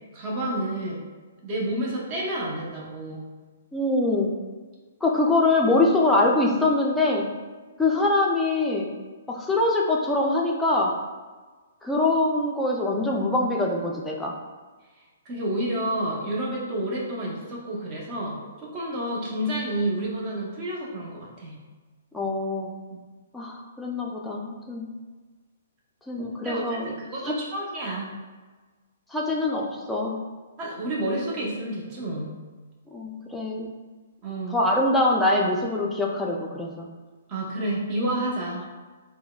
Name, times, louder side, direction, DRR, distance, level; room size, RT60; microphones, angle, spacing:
voice 1, 0.1-1.0 1.4-3.3 15.3-21.6 26.2-28.1 30.6-32.3 34.2-34.6 37.3-38.6, right 1 dB, 30° right, -4 dB, 0.8 m, -30 dB
voice 2, 3.7-4.3 5.0-7.3 7.8-8.9 9.3-11.0 11.8-14.4 22.1-22.7 23.3-24.9 26.1-26.9 27.2-27.3 29.1-30.2 32.9-33.7 34.5-36.9, left 2 dB, 5° left, -2 dB, 0.4 m, -24 dB
3.7 x 2.1 x 2.2 m, 1.4 s
figure-of-eight pair, 125°, 0 cm